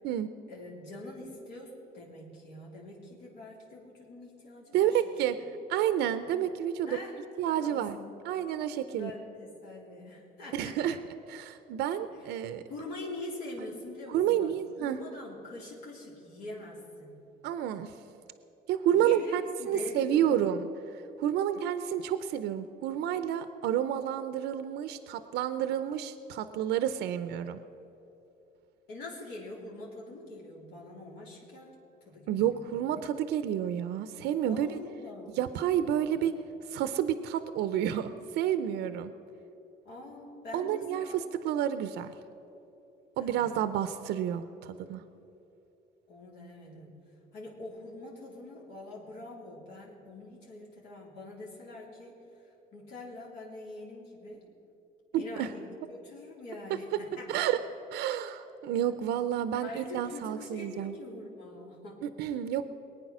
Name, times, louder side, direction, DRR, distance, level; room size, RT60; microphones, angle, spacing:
voice 1, 0.5-5.0 6.8-7.2 7.6-8.2 8.9-11.0 12.7-14.5 14.8-17.1 18.9-20.4 28.9-31.7 32.1-32.7 34.5-35.4 35.7-36.1 39.8-41.2 43.2-43.6 46.1-46.9 47.3-52.2 52.7-54.4 55.1-57.5 58.9-59.0 59.6-62.0, left 2 dB, 80° left, -4 dB, 3.3 m, -44 dB
voice 2, 4.7-5.4 5.7-7.0 7.4-8.0 8.2-9.1 10.5-11.0 11.3-12.6 14.1-15.0 17.4-17.9 18.7-19.4 19.7-27.6 32.3-34.8 35.3-36.3 36.7-39.1 40.5-41.1 41.4-42.1 43.2-45.0 55.1-55.5 57.3-57.6 57.9-61.0 62.0-62.7, right 10 dB, 80° right, 11 dB, 0.6 m, -30 dB
21.0 x 9.2 x 6.1 m, 2.9 s
cardioid pair, 110°, 17 cm